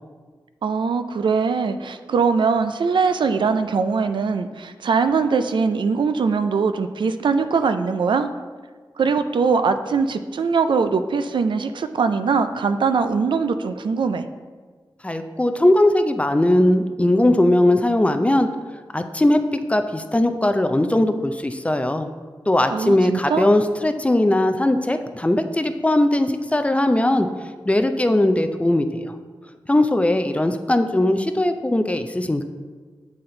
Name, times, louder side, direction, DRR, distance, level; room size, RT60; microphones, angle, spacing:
voice 1, 0.6-8.3 9.0-14.3 22.7-23.5, right 5 dB, 75° right, 10 dB, 0.3 m, -21 dB
voice 2, 15.0-18.5 18.9-22.1 22.5-27.3 27.7-29.1 29.7-32.4, left 1 dB, 15° left, 8 dB, 0.4 m, -19 dB
7.7 x 4.2 x 3.8 m, 1.5 s
wide cardioid pair, 85°, 8 cm